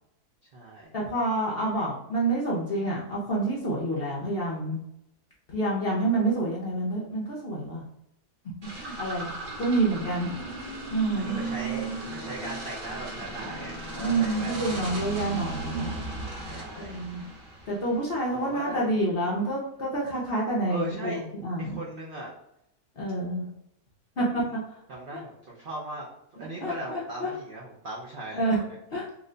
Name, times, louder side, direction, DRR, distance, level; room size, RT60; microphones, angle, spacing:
voice 1, 0.4-0.9 11.1-14.6 16.5-16.9 18.3-19.0 20.7-21.2 21.6-22.3 24.3-24.5 24.9-26.1 26.4-28.5, right 2 dB, 85° right, -4 dB, 0.4 m, -38 dB
voice 2, 0.9-4.8 5.5-7.8 8.7-10.3 10.9-11.4 14.0-15.9 16.8-17.2 17.7-21.8 23.0-23.5 24.2-24.4 25.1-25.2 26.6-27.3 28.3-28.6 28.9-29.1, right 2 dB, 55° left, -4 dB, 0.6 m, -28 dB
sound 1, 8.6-18.1, right 2 dB, 40° right, 0.8 m, -36 dB
2.9 x 2.1 x 3.7 m, 0.79 s
omnidirectional pair, 1.7 m